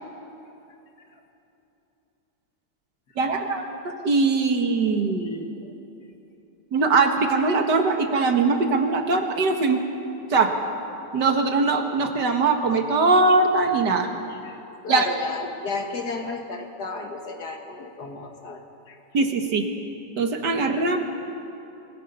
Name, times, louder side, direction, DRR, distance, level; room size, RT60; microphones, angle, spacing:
voice 1, 3.2-5.5 6.7-9.8 10.3-10.6 11.1-14.1 14.9-15.1 19.1-19.7 20.2-21.0, right 3 dB, 85° right, 4 dB, 2.3 m, -21 dB
voice 2, 14.8-19.0, left 3 dB, 70° left, 3 dB, 2.5 m, -34 dB
25.5 x 21.5 x 5.6 m, 3.0 s
omnidirectional pair, 1.8 m